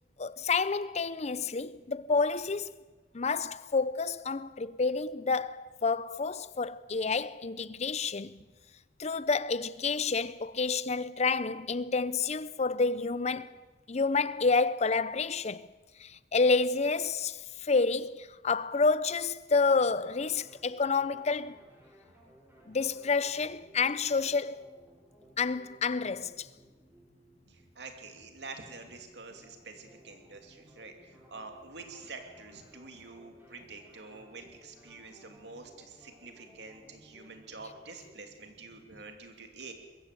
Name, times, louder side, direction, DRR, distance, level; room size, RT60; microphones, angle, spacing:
voice 1, 0.2-2.7 3.1-8.3 9.0-13.5 13.9-15.7 16.0-21.6 22.7-24.6 25.4-26.5, left 4 dB, 40° left, 0.6 m, -29 dB
sound 1, 19.7-39.1, equal, 10° right, 6.6 m, -59 dB
voice 2, 27.5-39.7, right 3 dB, 70° right, 2.8 m, -47 dB
22.0 x 14.5 x 8.3 m
head